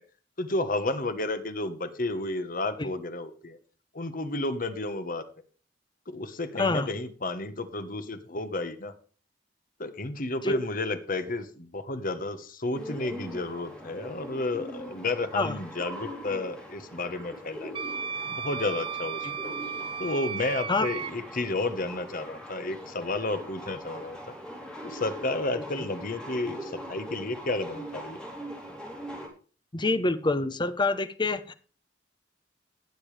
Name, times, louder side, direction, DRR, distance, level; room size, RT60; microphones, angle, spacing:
voice 1, 0.4-3.6 3.9-5.2 6.1-8.9 9.8-17.7 18.2-19.5 20.0-24.3 24.8-28.2, left 2 dB, 50° left, 10 dB, 1.3 m, -32 dB
sound 1, 12.7-29.3, equal, 5° left, 3.8 m, -42 dB
Wind instrument woodwind instrument, 17.7-21.1, right 6 dB, 30° right, 0.5 m, -34 dB
voice 2, 29.7-31.5, left 3 dB, 25° left, 11 dB, 0.9 m, -26 dB
19.0 x 7.1 x 3.4 m, 0.39 s
head